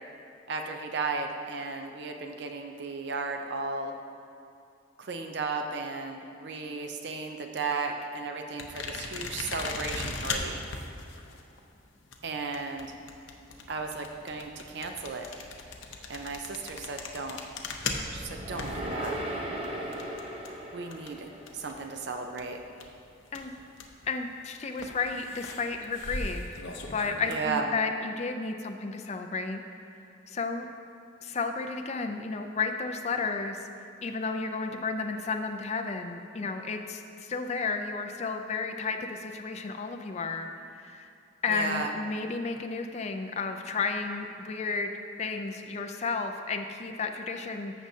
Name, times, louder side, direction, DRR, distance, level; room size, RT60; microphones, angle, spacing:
voice 1, 0.5-3.9 5.0-10.6 12.2-13.0 13.7-15.3 16.1-17.4 18.1-19.1 20.7-22.6 27.3-27.6 41.5-41.9, right 4 dB, 55° right, 4 dB, 0.5 m, -35 dB
sound 1, 8.6-22.0 22.2-24.1 24.7-27.5, left 3 dB, 70° left, 0.8 m, -39 dB
sound 2, 17.5-21.9, right 1 dB, 25° right, 0.8 m, -38 dB
voice 2, 24.0-26.6 26.9-30.7 31.2-33.7 34.0-41.1 41.4-44.9 45.2-47.7, left 4 dB, 35° left, 5 dB, 0.4 m, -32 dB
14.5 x 6.2 x 2.7 m, 2.6 s
head